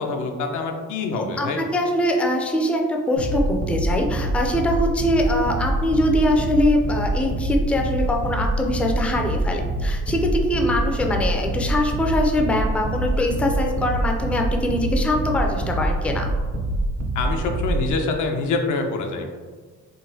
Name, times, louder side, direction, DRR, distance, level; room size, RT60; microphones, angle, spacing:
voice 1, 0.0-1.6 17.2-19.3, left 3 dB, 85° left, 3 dB, 0.5 m, -25 dB
voice 2, 1.1-16.3, left 1 dB, 5° left, 2 dB, 0.3 m, -23 dB
sound 1, 3.2-17.9, right 1 dB, 65° right, 0.6 m, -25 dB
3.8 x 2.1 x 2.7 m, 1.4 s
cardioid pair, 90°, 30 cm